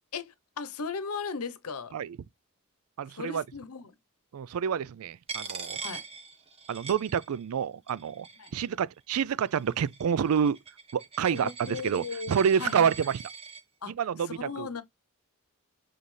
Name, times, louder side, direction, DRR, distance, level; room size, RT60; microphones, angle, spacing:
voice 1, 0.1-1.9 3.1-3.9 5.8-6.0 8.4-8.5 11.3-12.9 13.8-13.9 14.2-14.8, left 5 dB, 85° left, 0.9 m, -37 dB
voice 2, 3.0-3.4 4.3-5.8 6.7-8.3 8.5-10.6 10.9-13.2 13.9-14.8, right 7 dB, 75° right, 0.4 m, -28 dB
Coin (dropping), 5.3-7.6 7.9-8.7 9.4-13.6, right 5 dB, 25° right, 1.1 m, -42 dB
7.4 x 4.0 x 3.3 m
head